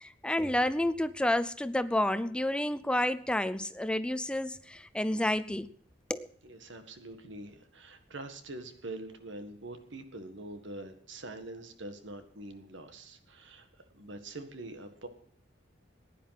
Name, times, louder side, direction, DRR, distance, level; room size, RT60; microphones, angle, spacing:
voice 1, 0.0-5.7 6.1-6.3, left 1 dB, 5° left, 0.6 m, -30 dB
voice 2, 6.4-13.7 13.9-15.1, right 2 dB, 75° right, 1.7 m, -44 dB
16.0 x 10.5 x 5.8 m
head